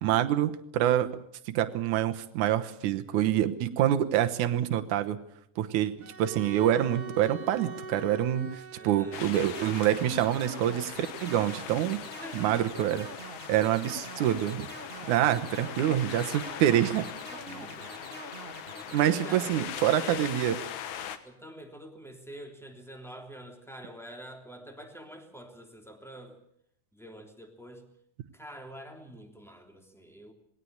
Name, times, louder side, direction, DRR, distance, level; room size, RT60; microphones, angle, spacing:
voice 1, 0.0-1.2 1.5-5.2 5.6-5.9 6.2-12.0 12.3-13.1 13.5-14.7 15.1-17.1 18.9-20.6, right 11 dB, 75° right, 8 dB, 2.5 m, -26 dB
Bowed string instrument, 6.0-11.0, right 3 dB, 55° right, 1.0 m, -44 dB
voice 2, 8.8-9.3 12.2-12.6 13.3-13.9 17.3-18.6 19.1-20.4 21.2-26.4 26.9-27.8 28.3-30.3, right 1 dB, ahead, 4 dB, 2.7 m, -47 dB
sound 1, 9.1-21.2, left 9 dB, 70° left, 2.6 m, -41 dB
sound 2, 9.1-19.5, right 4 dB, 40° right, 0.8 m, -45 dB
20.0 x 17.5 x 8.7 m, 0.71 s
omnidirectional pair, 3.6 m